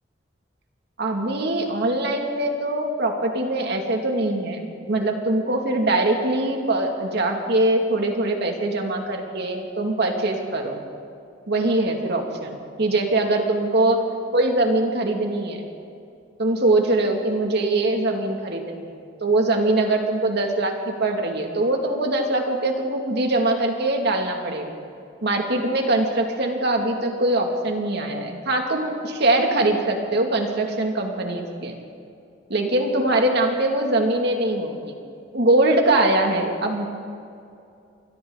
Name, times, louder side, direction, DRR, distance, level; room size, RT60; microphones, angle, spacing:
voice 1, 1.0-10.8 11.5-14.0 14.3-15.6 16.4-18.9 19.2-24.7 25.2-31.8 32.5-34.8 35.3-36.9, right 2 dB, 60° right, 2 dB, 2.6 m, -22 dB
28.0 x 23.0 x 4.1 m, 2.5 s
head